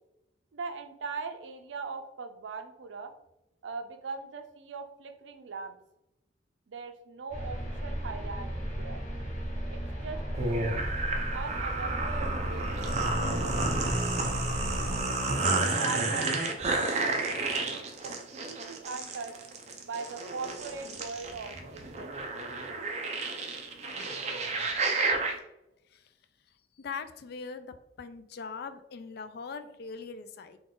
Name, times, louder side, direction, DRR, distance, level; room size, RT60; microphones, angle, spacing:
voice 1, 0.5-3.1 3.6-5.8 6.7-9.0 9.7-10.9 11.3-13.9 15.3-17.2 17.6-19.3 19.8-22.3, right 4 dB, 90° right, 8 dB, 0.5 m, -40 dB
sound 1, 7.3-15.0, equal, 40° left, 1.0 m, -35 dB
sound 2, 10.4-25.3, right 2 dB, 40° right, 0.5 m, -31 dB
voice 2, 26.8-30.6, left 5 dB, 60° left, 11 dB, 0.4 m, -41 dB
3.9 x 2.4 x 3.7 m, 0.89 s
head